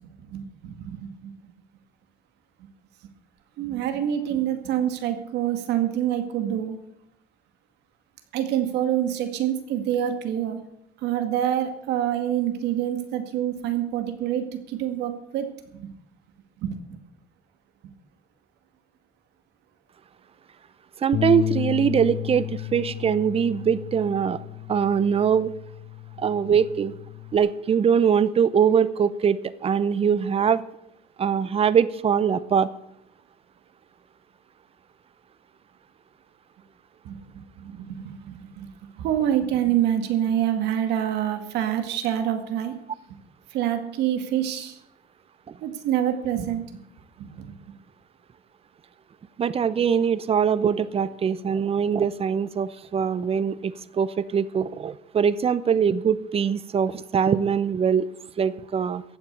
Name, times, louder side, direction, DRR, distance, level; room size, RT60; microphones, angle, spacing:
voice 1, 0.2-1.3 3.6-6.8 8.3-10.6 11.0-15.9 16.6-17.0 37.0-37.2 37.6-38.7 39.0-42.7 43.5-44.8 45.6-46.6 47.2-47.5, right 10 dB, 85° right, 7 dB, 2.0 m, -26 dB
voice 2, 21.0-24.4 24.7-25.5 26.2-26.9 27.3-30.6 31.2-32.7 49.4-58.1 58.4-59.0, right 7 dB, 35° right, 16 dB, 0.8 m, -22 dB
Bass guitar, 21.1-27.4, left 12 dB, 65° left, 0.9 m, -33 dB
15.0 x 8.9 x 6.7 m, 0.77 s
cardioid pair, 110°, 17 cm